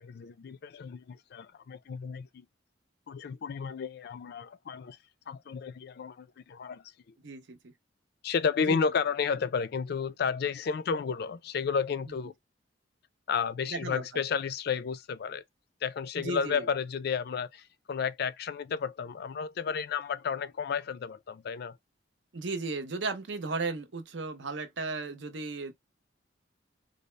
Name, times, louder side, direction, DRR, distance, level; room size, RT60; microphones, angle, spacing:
voice 1, 0.0-2.4 3.1-5.0 5.3-6.8 8.2-12.3 13.3-15.4 15.8-21.8, left 6 dB, 55° left, 0.4 m, -32 dB
voice 2, 7.2-7.7 8.6-8.8 13.7-14.2 16.2-16.7 22.3-25.7, right 3 dB, 70° right, 0.7 m, -35 dB
4.0 x 2.0 x 3.1 m
head